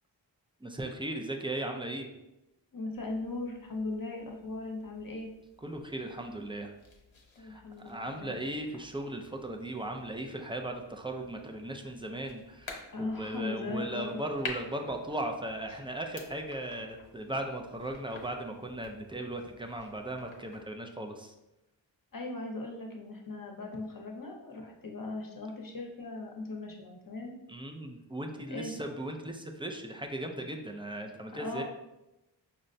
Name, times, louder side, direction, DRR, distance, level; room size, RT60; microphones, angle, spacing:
voice 1, 0.6-2.1 5.6-6.7 7.4-21.3 27.5-31.6, right 1 dB, 10° right, 3 dB, 0.3 m, -37 dB
voice 2, 2.7-5.3 7.4-8.3 12.9-14.2 22.1-27.3 28.5-28.7 31.3-31.6, left 2 dB, 45° left, 1 dB, 0.7 m, -38 dB
sound 1, 2.9-20.6, left 3 dB, 85° left, 0.7 m, -51 dB
5.5 x 2.1 x 2.6 m, 0.94 s
wide cardioid pair, 60°, 46 cm